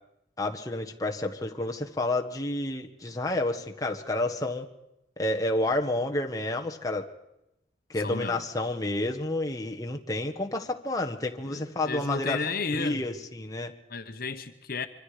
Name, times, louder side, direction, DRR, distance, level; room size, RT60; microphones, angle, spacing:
voice 1, 0.4-4.7 5.2-7.1 7.9-12.4 12.7-13.7, left 2 dB, 20° left, 1.4 m, -30 dB
voice 2, 8.0-8.4 11.4-13.0 13.9-14.9, left 4 dB, 55° left, 1.1 m, -33 dB
25.0 x 24.5 x 5.0 m
head